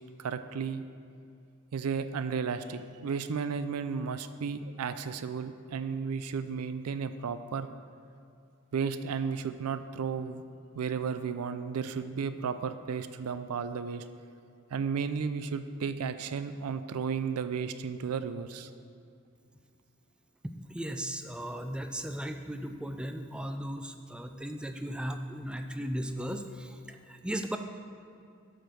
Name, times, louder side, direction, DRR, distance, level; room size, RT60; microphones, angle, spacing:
voice 1, 0.2-0.8 1.7-7.7 8.7-10.4 10.7-14.0 14.7-18.7, right 6 dB, 80° right, 11 dB, 0.4 m, -33 dB
voice 2, 20.4-27.6, equal, 5° right, 6 dB, 0.4 m, -36 dB
8.8 x 5.2 x 6.1 m, 2.5 s
head